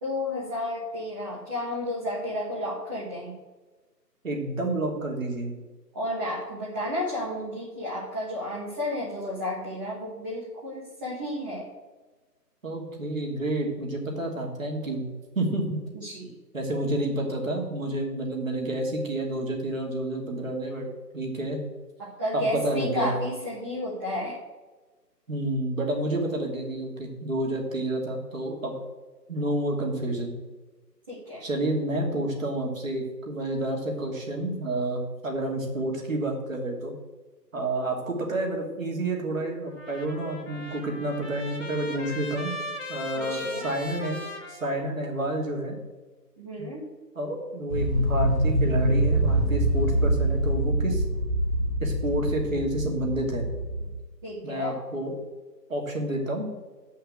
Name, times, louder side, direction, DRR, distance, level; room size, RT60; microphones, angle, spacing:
voice 1, 0.0-3.3 5.9-11.7 15.9-16.3 22.0-24.4 31.1-31.4 43.1-43.7 46.4-46.8 54.2-54.8, left 1 dB, 15° right, -8 dB, 1.5 m, -32 dB
voice 2, 4.2-5.5 12.6-15.0 15.3-15.8 16.5-20.9 21.1-21.6 22.3-23.1 25.3-28.7 29.3-30.3 31.4-36.9 37.5-42.6 42.9-44.2 44.5-45.8 46.6-46.7 47.1-51.0 51.8-53.5 54.4-55.1 55.7-56.5, right 1 dB, 50° right, 0 dB, 2.9 m, -29 dB
Trumpet, 39.7-45.3, left 1 dB, 45° left, 2.9 m, -38 dB
sound 1, 47.7-54.0, right 1 dB, 85° right, 2.2 m, -25 dB
8.9 x 5.6 x 7.5 m, 1.2 s
figure-of-eight pair, 155°, 49 cm